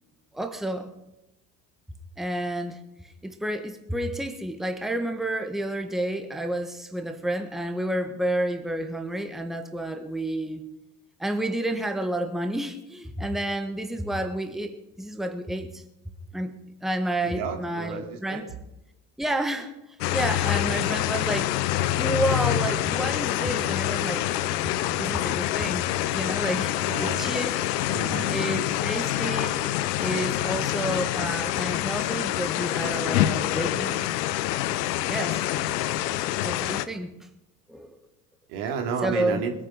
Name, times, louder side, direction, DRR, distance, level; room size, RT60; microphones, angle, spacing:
voice 1, 0.3-0.9 2.2-10.6 11.2-15.8 16.3-16.5 16.8-18.4 19.2-24.3 24.6-24.7 25.0-27.5 28.3-29.7 30.0-34.0 35.1-35.4 36.4-37.3 37.7-38.0 39.0-39.4, right 1 dB, ahead, 7 dB, 1.6 m, -30 dB
voice 2, 17.2-18.5 26.4-28.9 38.5-39.5, right 6 dB, 70° right, 3 dB, 2.9 m, -33 dB
sound 1, 20.0-36.9, left 14 dB, 75° left, 0.9 m, -26 dB
21.0 x 9.7 x 5.7 m, 0.91 s
hypercardioid pair, 70°, 48 cm